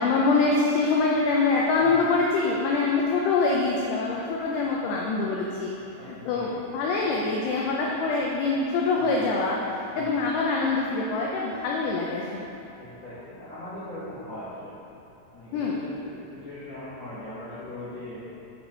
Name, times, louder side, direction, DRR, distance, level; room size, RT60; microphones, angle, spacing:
voice 1, 0.0-5.7 6.1-6.5 6.7-9.6 10.0-12.3 15.5-15.8, left 3 dB, 85° left, -3 dB, 2.4 m, -24 dB
voice 2, 5.9-6.6 7.0-7.3 9.0-9.3 9.9-10.3 12.8-14.7 15.3-18.2, left 1 dB, 65° left, -14 dB, 1.6 m, -40 dB
7.0 x 5.7 x 4.4 m, 2.8 s
omnidirectional pair, 5.6 m